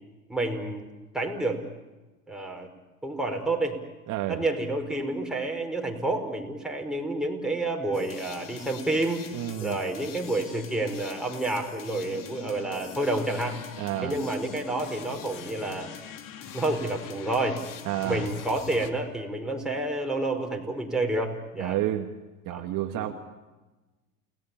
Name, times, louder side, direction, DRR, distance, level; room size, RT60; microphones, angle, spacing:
voice 1, 0.3-0.9 1.1-1.6 2.3-2.7 3.0-3.8 4.3-9.2 9.6-13.6 14.0-15.9 16.5-17.6 18.0-21.8 22.5-23.1, right 2 dB, ahead, 1 dB, 5.2 m, -29 dB
voice 2, 4.1-4.4 9.3-9.8 13.8-14.2 17.9-18.3 21.6-22.1 22.5-23.1, right 13 dB, 45° right, 4 dB, 1.9 m, -30 dB
sound 1, 7.9-18.9, left 8 dB, 45° left, 2.7 m, -43 dB
29.5 x 19.0 x 8.8 m, 1.2 s
hypercardioid pair, 90°, 45 cm